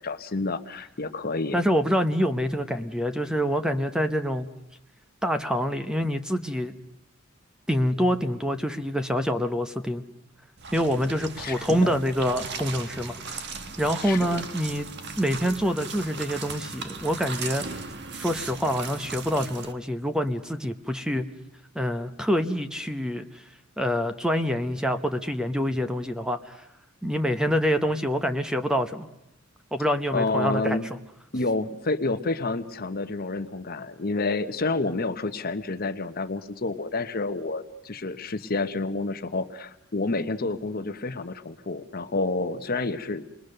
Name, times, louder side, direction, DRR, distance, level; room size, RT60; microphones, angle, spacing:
voice 1, 0.0-1.6 11.4-12.0 14.0-14.4 30.1-30.9 31.3-43.3, left 3 dB, 45° left, 9 dB, 1.0 m, -29 dB
voice 2, 1.5-4.5 5.2-6.7 7.7-10.0 10.7-14.9 15.2-17.6 18.1-21.3 21.7-23.4 23.8-26.7 27.0-29.1 29.7-30.8, equal, 5° right, 7 dB, 0.8 m, -26 dB
sound 1, 10.6-19.7, right 4 dB, 55° right, 1.4 m, -37 dB
28.0 x 21.0 x 6.6 m, 0.85 s
head